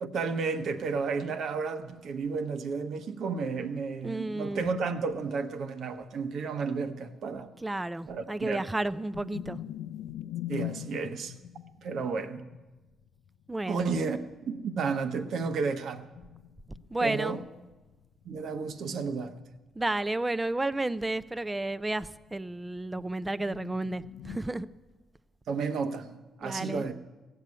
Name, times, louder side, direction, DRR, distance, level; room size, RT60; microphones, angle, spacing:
voice 1, 0.0-7.5 8.1-8.7 10.5-11.3 11.8-12.4 13.7-14.2 14.5-16.0 17.0-17.4 18.2-19.4 25.5-26.9, right 5 dB, 65° right, 8 dB, 1.1 m, -32 dB
voice 2, 4.0-4.6 7.6-9.6 13.5-14.0 16.9-17.4 19.8-24.7 26.4-26.9, right 2 dB, 15° right, 16 dB, 0.5 m, -32 dB
sound 1, 9.1-14.4 15.6-19.8 20.1-20.3 20.6-24.4, left 13 dB, 90° left, 0.5 m, -43 dB
16.0 x 6.9 x 9.5 m, 1.1 s
cardioid pair, 90°, 0 cm